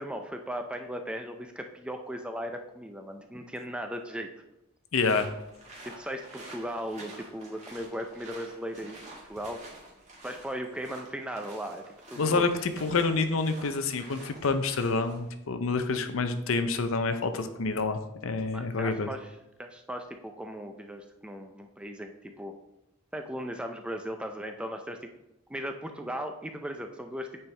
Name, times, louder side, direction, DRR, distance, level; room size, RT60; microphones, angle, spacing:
voice 1, 0.0-4.3 5.8-9.6 10.2-12.5 18.5-22.5 23.1-25.1 25.5-27.3, equal, 5° right, 5 dB, 0.4 m, -37 dB
voice 2, 4.9-5.3 12.2-19.1, left 4 dB, 70° left, 9 dB, 0.6 m, -28 dB
sound 1, 5.0-15.3, right 2 dB, 30° right, 1.8 m, -49 dB
8.8 x 4.4 x 3.3 m, 0.89 s
head